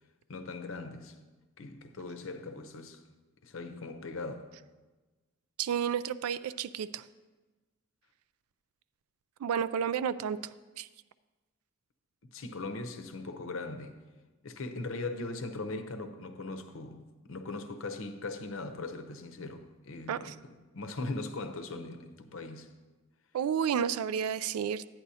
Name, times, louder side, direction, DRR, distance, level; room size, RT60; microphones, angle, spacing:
voice 1, 0.3-1.2 1.6-3.0 3.4-4.5 12.2-14.1 14.4-22.7, left 3 dB, 65° left, 0.7 m, -40 dB
voice 2, 5.6-7.0 9.4-10.4 10.8-10.9 20.1-20.3 23.3-24.9, right 8 dB, 85° right, 0.3 m, -31 dB
11.5 x 9.1 x 2.7 m
head